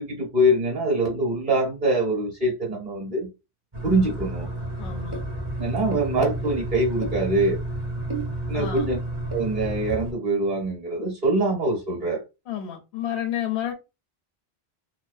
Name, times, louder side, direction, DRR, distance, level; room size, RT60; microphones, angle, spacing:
voice 1, 0.0-3.3 3.8-4.5 5.6-7.6 8.5-9.0 9.3-12.2, right 1 dB, 45° right, 1.0 m, -24 dB
sound 1, 3.7-10.1, right 2 dB, 30° right, 0.6 m, -30 dB
voice 2, 4.8-5.2 8.5-8.9 12.5-13.7, left 10 dB, 75° left, 0.8 m, -30 dB
2.2 x 2.2 x 2.5 m
omnidirectional pair, 1.1 m